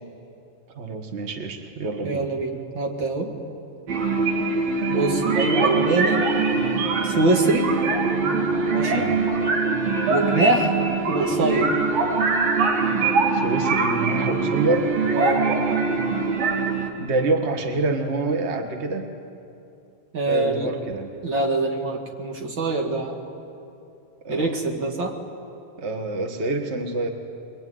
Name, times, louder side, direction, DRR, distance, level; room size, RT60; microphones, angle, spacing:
voice 1, 0.7-2.3 8.9-9.2 13.3-14.9 17.0-19.1 20.2-21.1 24.2-24.6 25.8-27.1, right 3 dB, 80° right, 4 dB, 0.6 m, -26 dB
voice 2, 2.0-3.3 4.9-6.2 7.0-7.7 8.7-9.1 10.1-10.8 11.0-11.7 15.1-15.5 20.1-20.7 21.2-23.2 24.3-25.1, right 2 dB, 40° right, 1 dB, 2.6 m, -24 dB
sound 1, 3.9-16.9, right 4 dB, 55° right, 3.0 m, -23 dB
24.0 x 22.0 x 9.5 m, 2.7 s
omnidirectional pair, 3.9 m